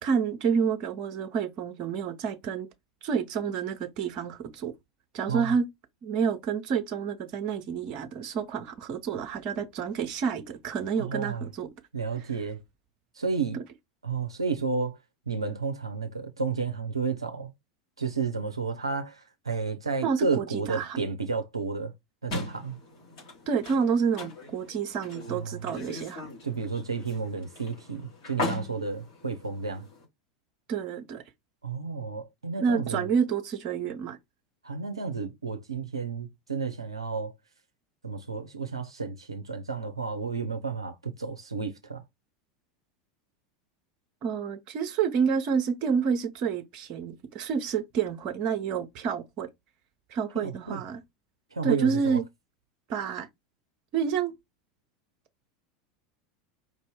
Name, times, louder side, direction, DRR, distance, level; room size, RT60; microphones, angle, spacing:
voice 1, 0.0-2.7 3.0-4.7 5.1-5.7 6.0-11.7 13.5-13.6 20.0-21.0 23.5-26.3 30.7-31.2 32.6-34.2 44.2-49.5 50.1-51.0 51.6-52.3 52.9-53.3 53.9-54.3, right 6 dB, 40° right, 0.9 m, -29 dB
voice 2, 11.0-11.5 11.9-12.6 13.1-13.6 14.0-15.0 15.3-17.5 18.0-21.9 22.2-22.8 25.3-25.6 26.4-29.9 31.6-33.1 34.6-37.3 38.0-42.0 50.3-50.8 51.5-52.2, right 4 dB, 80° right, 0.5 m, -32 dB
sound 1, 22.3-30.0, left 2 dB, 55° left, 3.1 m, -39 dB
4.9 x 2.6 x 3.4 m
figure-of-eight pair, 80°, 3 cm